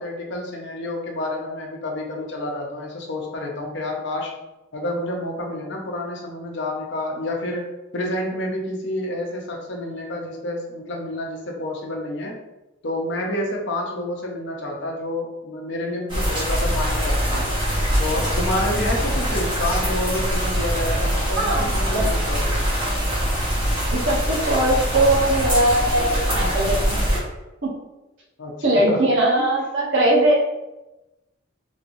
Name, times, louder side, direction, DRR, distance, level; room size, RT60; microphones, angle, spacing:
voice 1, 0.0-4.3 4.7-7.7 7.9-12.3 12.8-17.5 18.0-22.6 28.4-29.0 29.4-29.5, left 1 dB, 60° left, 0 dB, 0.7 m, -29 dB
sound 1, 16.1-27.2, equal, 25° right, 1.2 m, -23 dB
voice 2, 21.4-22.1 23.9-27.0 27.6-27.7 28.6-30.4, right 1 dB, 65° right, -3 dB, 0.9 m, -20 dB
3.5 x 3.2 x 2.6 m, 0.99 s
head